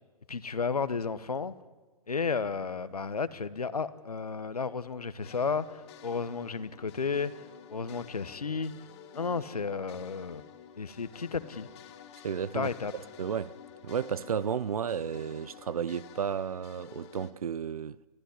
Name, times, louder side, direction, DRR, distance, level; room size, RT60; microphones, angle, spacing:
voice 1, 0.3-1.5 2.1-7.3 7.7-8.7 9.1-10.4 10.8-11.7 12.5-12.9, left 5 dB, 85° left, 1.1 m, -33 dB
sound 1, 5.2-17.3, left 9 dB, 45° left, 2.5 m, -51 dB
voice 2, 12.2-12.7 13.2-13.6 13.8-18.0, right 7 dB, 70° right, 0.7 m, -32 dB
30.0 x 14.0 x 9.8 m
figure-of-eight pair, 120°, 19 cm